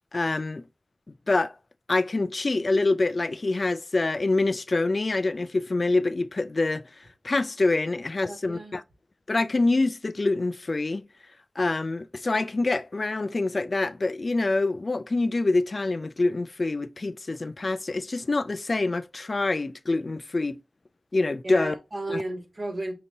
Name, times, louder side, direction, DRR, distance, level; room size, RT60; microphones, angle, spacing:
voice 1, 0.1-0.7 1.3-1.5 1.9-6.8 7.2-8.8 9.3-11.1 11.6-20.6 21.1-21.7 22.1-22.2, left 2 dB, 60° left, 0.3 m, -26 dB
voice 2, 8.3-8.8 21.4-22.9, right 1 dB, 65° right, 2.2 m, -33 dB
6.4 x 2.8 x 2.7 m
wide cardioid pair, 50°, 0 cm